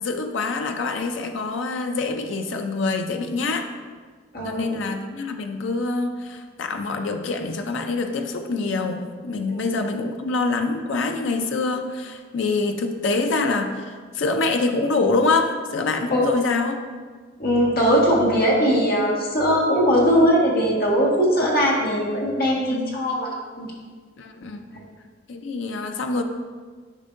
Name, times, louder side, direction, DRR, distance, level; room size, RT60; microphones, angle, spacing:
voice 1, 0.0-3.7 4.4-16.8 22.7-23.0 24.2-24.7 25.3-26.2, left 3 dB, 70° left, 5 dB, 0.5 m, -25 dB
voice 2, 4.3-4.8 9.5-9.7 16.1-16.3 17.4-23.7, equal, 50° left, -4 dB, 1.6 m, -20 dB
10.0 x 5.2 x 2.5 m, 1.5 s
head